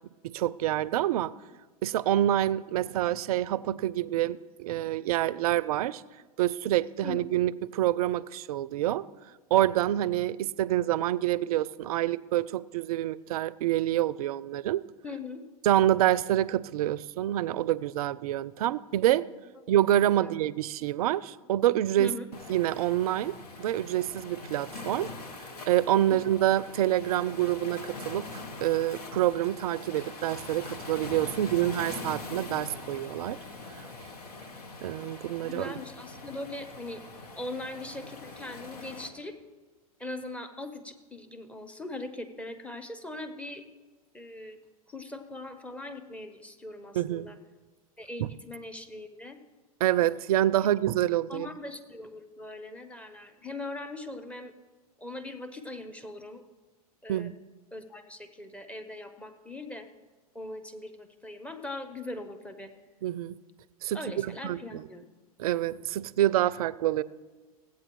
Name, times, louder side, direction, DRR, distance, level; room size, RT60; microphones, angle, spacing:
voice 1, 0.2-1.3 1.8-6.0 6.4-9.1 9.5-14.8 15.6-19.3 19.7-22.1 22.5-25.1 25.7-33.4 34.8-35.7 46.9-47.3 48.2-48.3 49.8-51.5 57.1-57.4 63.0-63.4 63.8-64.8 65.4-67.0, right 13 dB, 70° right, 20 dB, 0.4 m, -27 dB
voice 2, 15.0-15.4 20.2-20.3 22.0-22.3 26.1-26.2 35.4-37.0 37.4-39.4 40.0-43.6 44.1-44.6 44.9-47.4 48.0-49.4 51.3-54.5 55.0-56.4 57.0-57.3 57.7-59.9 60.3-62.7 63.9-65.0, left 2 dB, 5° left, 7 dB, 0.8 m, -40 dB
Waves surf, 22.3-39.1, left 3 dB, 80° left, 1.1 m, -43 dB
16.0 x 8.5 x 3.1 m, 1.3 s
hypercardioid pair, 105°, 19 cm